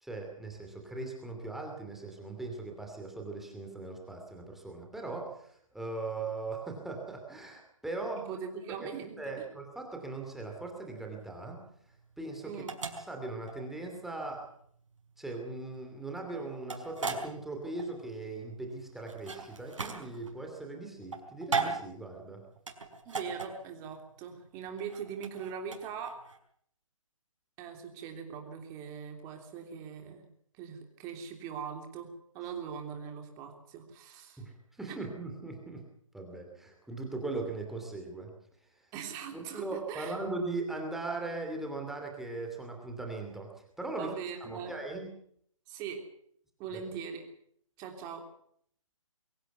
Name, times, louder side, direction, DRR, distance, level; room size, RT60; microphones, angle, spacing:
voice 1, 0.0-8.4 8.8-8.9 9.2-11.6 12.2-12.6 13.0-14.5 15.2-22.4 34.4-35.8 36.1-38.3 39.3-43.5 43.8-44.1 44.4-45.1 46.7-46.8, right 3 dB, ahead, 1 dB, 2.7 m, -39 dB
voice 2, 8.2-9.2 12.4-12.7 23.0-26.2 27.6-30.2 30.6-34.4 34.9-35.0 38.9-40.2 44.0-44.7 45.7-46.1 46.6-47.2 47.8-48.3, right 7 dB, 20° right, 4 dB, 3.3 m, -41 dB
sound 1, 11.0-26.4, right 4 dB, 60° right, 5.0 m, -38 dB
23.0 x 16.5 x 8.2 m, 0.65 s
figure-of-eight pair, 145°, 17 cm